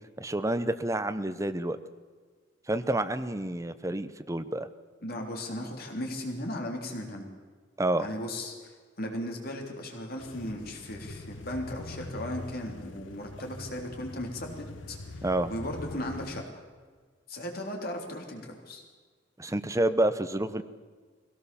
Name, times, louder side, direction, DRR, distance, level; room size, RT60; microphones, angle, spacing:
voice 1, 0.2-1.8 2.7-4.7 7.8-8.1 15.2-15.5 19.4-20.6, right 1 dB, 15° right, 11 dB, 0.8 m, -28 dB
voice 2, 5.0-7.3 8.0-16.6 17.3-18.8, left 1 dB, 50° left, 1 dB, 3.6 m, -37 dB
sound 1, 10.2-16.4, left 2 dB, 80° left, 1.1 m, -43 dB
21.5 x 17.0 x 7.1 m, 1.5 s
head